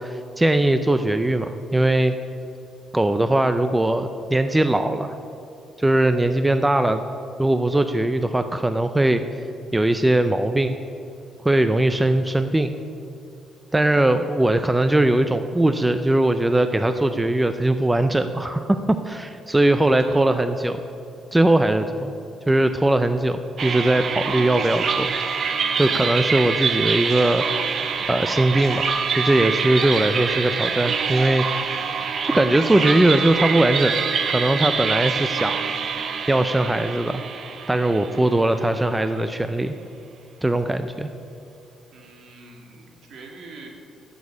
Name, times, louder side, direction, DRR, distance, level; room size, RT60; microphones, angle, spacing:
voice 1, 0.0-2.2 2.9-5.1 5.8-7.0 7.4-9.2 9.7-10.8 11.4-12.7 13.7-18.8 19.0-20.8 21.3-22.1 22.5-25.1 25.8-27.4 28.1-28.9 29.2-31.5 32.2-33.9 34.3-35.6 36.3-37.2 37.7-39.8 40.4-41.1, right 1 dB, 10° right, 9 dB, 0.4 m, -20 dB
voice 2, 19.8-20.4 41.9-43.7, right 3 dB, 65° right, 2 dB, 2.0 m, -43 dB
sound 1, 23.6-38.8, right 6 dB, 45° right, 0.7 m, -25 dB
12.5 x 6.2 x 8.5 m, 2.6 s
cardioid pair, 135°, 0 cm